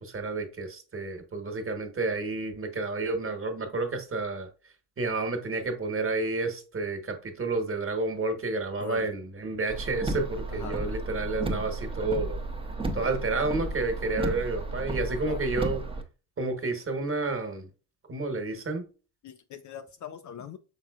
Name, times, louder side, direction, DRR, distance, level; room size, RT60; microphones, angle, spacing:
voice 1, 0.0-4.5 5.0-12.4 12.9-15.8 16.4-17.7 18.1-18.9, right 3 dB, 25° right, 1.3 m, -30 dB
Car, 9.7-16.0, right 2 dB, 10° right, 0.7 m, -33 dB
voice 2, 10.5-11.0 15.2-15.4 19.2-20.6, left 9 dB, 40° left, 0.4 m, -41 dB
5.8 x 3.8 x 2.4 m
hypercardioid pair, 65°, 50 cm